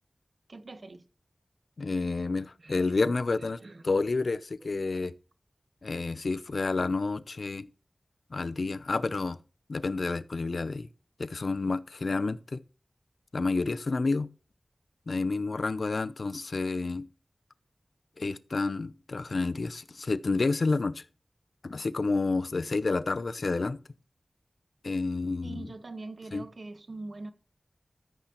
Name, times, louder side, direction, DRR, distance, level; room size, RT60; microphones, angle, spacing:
voice 1, 0.5-1.0 2.6-2.9 3.4-3.8 25.4-27.3, right 2 dB, 65° right, 1.2 m, -43 dB
voice 2, 1.8-3.6 3.8-5.1 5.8-7.7 8.3-9.4 9.7-10.9 11.2-12.6 13.3-14.3 15.1-17.1 18.2-21.0 21.6-23.8 24.8-25.7 26.3-26.4, left 3 dB, 75° left, 0.6 m, -29 dB
14.0 x 8.8 x 3.0 m
wide cardioid pair, 70°, 0 cm